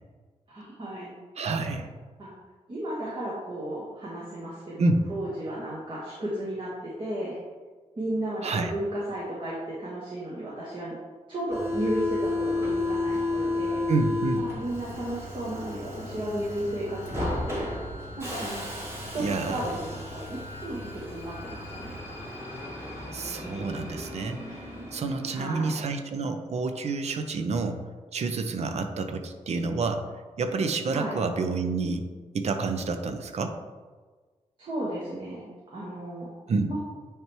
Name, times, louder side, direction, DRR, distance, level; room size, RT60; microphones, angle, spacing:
voice 1, 0.5-1.2 2.2-2.3 2.7-7.4 8.0-10.9 11.3-13.8 14.4-17.8 18.2-18.6 19.1-22.0 25.3-25.8 30.9-31.2 34.6-36.3 36.7-36.8, right 1 dB, 45° right, -7 dB, 1.4 m, -34 dB
voice 2, 1.4-1.9 4.8-5.1 8.4-8.7 13.9-14.5 19.2-19.6 23.1-27.8 28.1-30.0 30.4-32.0 32.3-33.5 36.5-36.7, right 3 dB, 60° right, 7 dB, 0.6 m, -28 dB
Subway metro underground, 11.5-25.8, left 2 dB, 20° right, 1.7 m, -33 dB
9.4 x 3.4 x 3.1 m, 1.4 s
wide cardioid pair, 115°, 12 cm